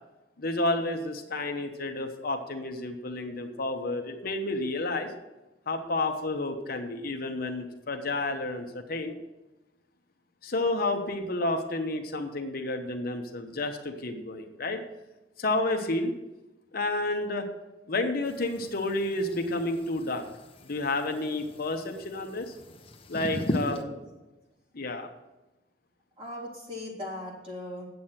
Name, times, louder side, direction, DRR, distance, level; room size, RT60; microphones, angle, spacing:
voice 1, 0.4-5.1 5.7-9.2 10.4-14.8 15.4-16.1 16.7-17.5 17.9-20.2 20.6-22.5 23.1-23.8 24.7-25.1, left 2 dB, 55° left, 4 dB, 1.0 m, -30 dB
sound 1, 18.2-23.8, left 1 dB, 35° left, 1.0 m, -38 dB
voice 2, 23.5-23.9 26.2-27.9, left 1 dB, 30° right, -4 dB, 3.3 m, -38 dB
9.4 x 7.8 x 5.8 m, 1.0 s
head